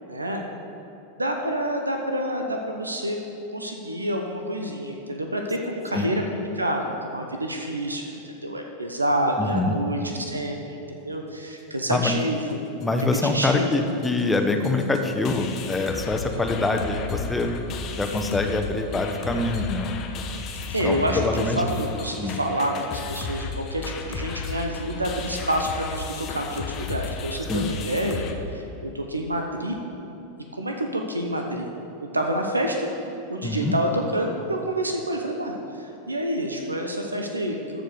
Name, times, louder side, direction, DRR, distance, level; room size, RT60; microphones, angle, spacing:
voice 1, 0.1-0.4 1.2-3.2 3.5-6.2 6.5-12.4 13.2-13.7 20.7-21.2 21.6-28.3 28.5-29.8 30.5-31.7 32.1-32.9 33.3-37.8, right 1 dB, 80° right, 3 dB, 0.9 m, -28 dB
voice 2, 9.4-9.8 11.9-12.1 12.8-17.5 18.0-19.9 20.8-21.6 22.2-22.4 27.5-27.7 33.4-33.7, left 2 dB, 10° left, 4 dB, 0.9 m, -25 dB
sound 1, 12.8-12.9 13.1-13.5 13.7-13.8 14.0-28.3, left 4 dB, 35° left, 0.9 m, -34 dB
13.5 x 5.2 x 6.5 m, 2.9 s
figure-of-eight pair, 90°, 0 cm